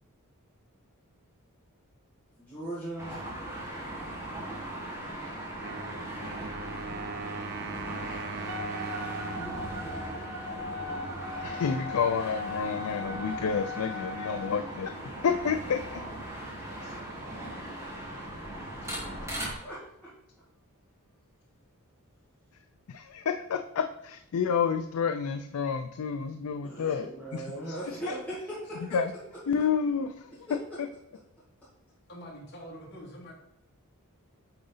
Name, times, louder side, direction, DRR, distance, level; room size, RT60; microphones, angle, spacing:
voice 1, 2.4-3.2 19.6-20.1 26.6-29.0 30.5-30.8, right 1 dB, 5° left, -10 dB, 2.0 m, -39 dB
sound 1, 3.0-19.5, right 1 dB, 15° right, 1.8 m, -39 dB
Wind instrument woodwind instrument, 5.6-11.2, right 4 dB, 45° right, 0.5 m, -41 dB
Wind instrument woodwind instrument 2, 8.5-14.5, left 3 dB, 75° right, 2.4 m, -39 dB
voice 2, 11.4-14.9 15.2-16.0 22.9-27.8 28.9-29.1 29.5-30.3, left 6 dB, 70° left, 6 dB, 0.4 m, -29 dB
voice 3, 32.1-33.3, equal, 50° left, -3 dB, 2.1 m, -45 dB
8.8 x 3.9 x 3.9 m, 0.80 s
head